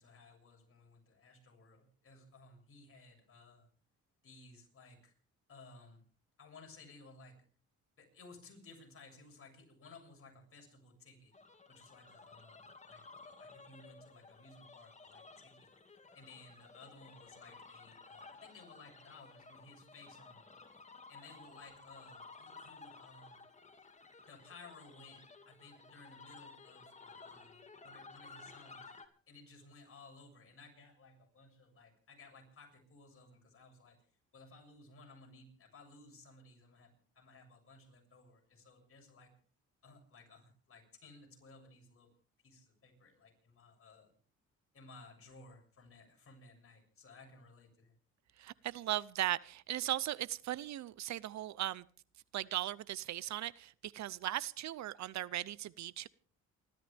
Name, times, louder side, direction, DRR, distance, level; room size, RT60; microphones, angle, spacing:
voice 1, 0.0-3.7 4.2-5.1 5.5-6.0 6.4-7.4 8.0-11.3 11.7-15.7 16.1-20.5 21.1-23.4 24.3-28.9 29.3-34.0 34.3-39.3 39.8-42.1 42.4-44.1 44.7-48.0, left 3 dB, 45° left, 1 dB, 7.4 m, -58 dB
sound 1, 11.3-29.1, left 4 dB, 25° left, 2.3 m, -56 dB
voice 2, 48.4-51.9 52.3-56.1, right 13 dB, 65° right, 21 dB, 0.7 m, -38 dB
28.5 x 13.5 x 3.5 m, 0.42 s
cardioid pair, 90°, 30 cm